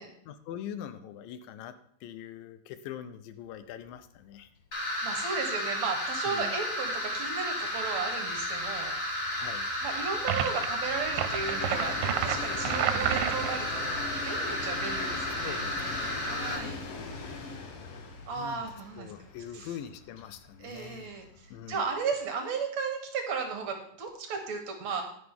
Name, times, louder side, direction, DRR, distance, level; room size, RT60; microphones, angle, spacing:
voice 1, 0.3-1.7 2.0-4.5 6.3-6.6 9.3-9.7 12.5-13.1 15.4-16.8 18.4-18.7 19.0-21.1 21.5-21.8, left 9 dB, 85° left, 11 dB, 2.5 m, -43 dB
Train, 3.8-3.9 4.3-4.4 4.6-22.1, left 4 dB, 60° left, 1.8 m, -42 dB
sound 1, 4.7-16.5, left 1 dB, 35° left, 1.5 m, -33 dB
voice 2, 5.0-8.9 9.8-15.7 16.3-16.8 18.3-19.1 19.5-19.7 20.6-25.0, right 5 dB, 65° right, 5 dB, 2.0 m, -35 dB
sound 2, 10.3-10.7 11.1-13.6, right 10 dB, 90° right, 2.3 m, -30 dB
10.0 x 9.8 x 3.6 m, 0.68 s
omnidirectional pair, 3.9 m